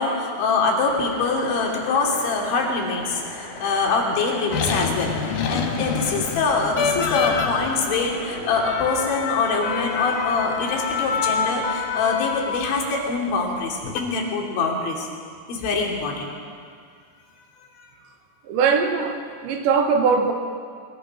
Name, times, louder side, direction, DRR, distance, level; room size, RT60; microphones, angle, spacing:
voice 1, 0.0-15.1 15.5-16.3 17.8-17.9, left 4 dB, 80° left, 0 dB, 5.4 m, -24 dB
sound 1, 0.8-11.5, left 1 dB, 35° left, 5.8 m, -38 dB
sound 2, 4.5-13.0 13.7-14.0, left 6 dB, 60° left, 2.4 m, -27 dB
voice 2, 18.4-20.3, right 5 dB, 75° right, 4 dB, 4.0 m, -21 dB
23.5 x 23.0 x 6.2 m, 2.1 s
omnidirectional pair, 5.3 m